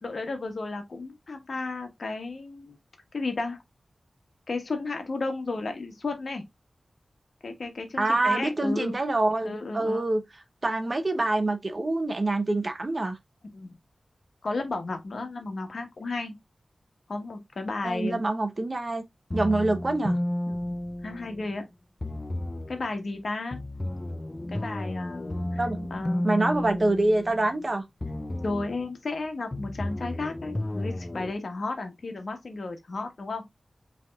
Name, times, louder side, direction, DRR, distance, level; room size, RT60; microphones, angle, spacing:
voice 1, 0.0-2.8 3.1-3.6 4.5-6.4 7.4-8.9 9.4-10.0 13.5-13.8 14.4-16.3 17.1-18.2 20.6-20.8 21.0-21.6 22.7-23.6 24.5-25.6 25.9-26.3 28.4-33.4, left 3 dB, 70° left, 1.3 m, -33 dB
voice 2, 8.0-10.2 10.6-13.2 17.8-19.0 19.3-20.2 25.6-25.9 26.2-27.8, right 2 dB, 40° right, 0.8 m, -26 dB
sound 1, 19.3-21.6 22.0-22.8 23.5-27.6 28.0-28.8 29.5-31.3, left 1 dB, 25° left, 0.5 m, -32 dB
5.5 x 3.4 x 2.3 m
wide cardioid pair, 70°, 0 cm